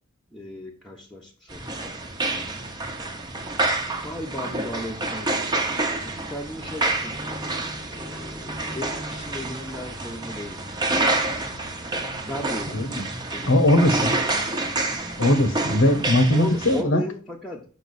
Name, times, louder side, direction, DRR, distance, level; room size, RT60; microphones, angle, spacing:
voice 1, 0.3-1.9 4.0-7.6 7.9-10.6 12.2-12.8 13.3-14.4 16.3-17.6, left 1 dB, ahead, -4 dB, 1.1 m, -36 dB
sound 1, 1.5-16.8, right 2 dB, 20° right, 1.1 m, -28 dB
voice 2, 12.7-13.0 13.5-14.1 15.2-17.0, left 1 dB, 75° left, 9 dB, 1.2 m, -20 dB
6.8 x 5.8 x 4.1 m, 0.40 s
head